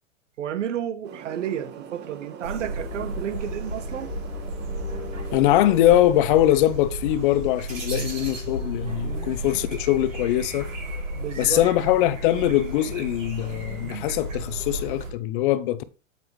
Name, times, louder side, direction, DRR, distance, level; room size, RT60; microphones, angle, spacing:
voice 1, 0.4-4.1 11.1-11.6, right 10 dB, 70° right, 1.2 m, -31 dB
sound 1, 1.0-6.2, right 8 dB, 25° right, 1.7 m, -42 dB
sound 2, 2.4-15.1, right 1 dB, 85° right, 5.7 m, -33 dB
voice 2, 5.3-10.7 11.4-15.8, left 14 dB, 40° left, 0.8 m, -22 dB
8.5 x 7.8 x 3.3 m
hypercardioid pair, 120°, 39 cm